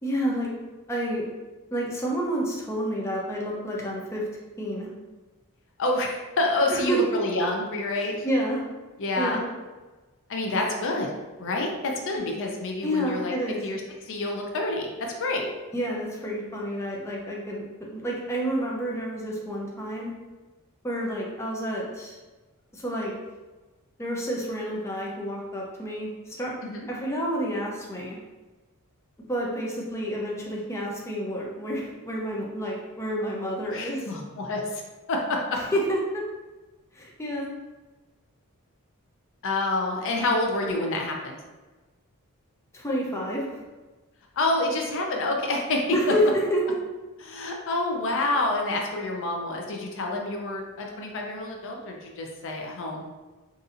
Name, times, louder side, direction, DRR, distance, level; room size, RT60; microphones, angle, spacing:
voice 1, 0.0-0.5 0.9-1.2 1.7-4.2 4.6-4.9 6.7-7.0 8.0-8.6 9.2-9.5 12.8-13.6 15.7-20.1 20.8-22.2 22.7-23.1 24.0-26.5 26.9-28.2 29.3-34.1 35.6-36.2 36.9-37.5 42.7-43.6 45.9-46.6, equal, 10° left, -3 dB, 0.5 m, -29 dB
voice 2, 5.8-8.3 9.0-9.4 10.3-11.1 11.4-13.3 13.6-13.8 14.1-14.9 15.2-15.4 26.6-26.9 33.7-34.8 35.1-35.6 39.4-41.4 44.4-45.8 47.2-53.0, left 2 dB, 60° left, 1 dB, 0.5 m, -28 dB
4.0 x 2.6 x 2.5 m, 1.2 s
head